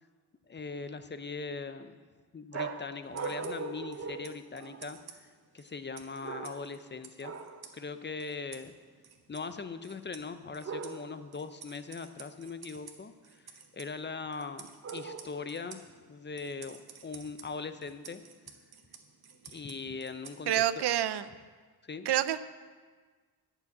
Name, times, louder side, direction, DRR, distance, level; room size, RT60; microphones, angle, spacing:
voice 1, 0.5-2.0 2.3-5.2 5.5-7.3 7.7-8.7 9.3-13.4 13.7-15.8 16.1-16.8 17.0-18.2 19.5-20.6 21.8-22.1, left 4 dB, 30° left, 10 dB, 0.6 m, -40 dB
sound 1, 2.5-5.0 6.2-6.8 7.2-7.7 10.6-11.3 14.8-15.6, right 4 dB, 40° right, 0.7 m, -40 dB
sound 2, 3.0-20.8, right 6 dB, 70° right, 1.4 m, -54 dB
voice 2, 20.5-21.2 22.1-22.4, right 11 dB, 85° right, 14 dB, 0.6 m, -27 dB
11.0 x 6.9 x 8.4 m, 1.5 s
wide cardioid pair, 130°, 39 cm